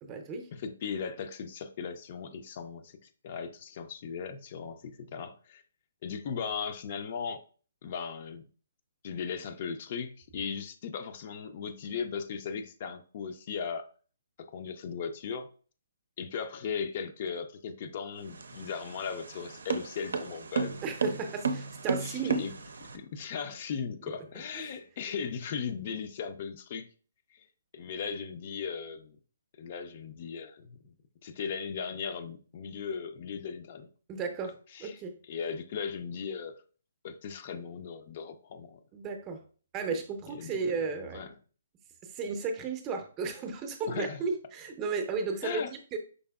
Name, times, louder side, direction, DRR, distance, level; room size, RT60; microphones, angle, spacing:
voice 1, 0.0-0.5 20.8-22.4 24.5-24.8 34.1-34.5 34.8-35.2 38.9-39.4 39.7-41.2 42.0-46.0, right 4 dB, 25° right, 0.6 m, -34 dB
voice 2, 0.5-5.6 6.0-7.4 7.8-8.4 9.0-13.9 14.5-15.5 16.2-20.8 22.0-22.5 22.9-26.9 27.3-27.5 27.7-29.2 29.6-30.9 31.2-33.9 34.7-35.0 35.3-36.6 37.0-38.8 40.3-40.6 41.1-41.3 43.9-44.2 45.4-45.7, left 6 dB, 45° left, 0.5 m, -37 dB
sound 1, 18.2-23.0, right 4 dB, 70° right, 0.5 m, -33 dB
5.2 x 3.3 x 2.3 m
figure-of-eight pair, 140°, 0 cm